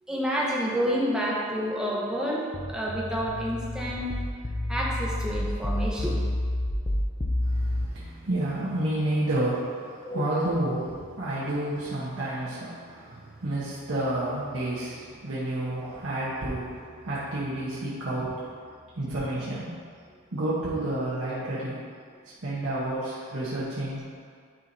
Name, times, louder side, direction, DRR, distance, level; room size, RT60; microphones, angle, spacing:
voice 1, 0.1-2.4 2.7-4.1 4.7-6.2 10.0-10.2, equal, 5° right, -5 dB, 0.9 m, -29 dB
sound 1, 2.5-7.9, left 1 dB, 25° left, 0.5 m, -29 dB
voice 2, 7.4-18.5 19.0-19.8 20.3-21.8 22.4-24.0, right 1 dB, 75° right, -9 dB, 1.1 m, -30 dB
10.5 x 4.5 x 2.7 m, 2.1 s
head